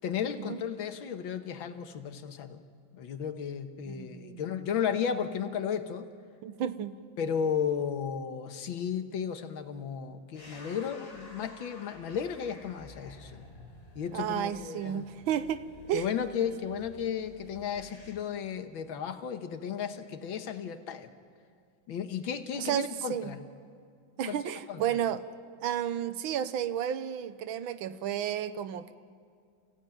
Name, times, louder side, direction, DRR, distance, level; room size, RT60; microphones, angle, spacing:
voice 1, 0.0-2.6 2.9-6.1 7.2-13.5 14.0-15.1 15.9-21.1 21.9-23.4 24.3-24.4 24.7-24.8, left 7 dB, 85° left, 2.0 m, -34 dB
voice 2, 3.9-4.4 6.4-7.0 14.1-16.1 22.5-23.4 24.2-25.2 25.6-28.9, right 10 dB, 90° right, 1.6 m, -32 dB
sound 1, 10.3-18.2, left 2 dB, 20° left, 2.1 m, -52 dB
30.0 x 16.0 x 9.2 m
omnidirectional pair, 2.1 m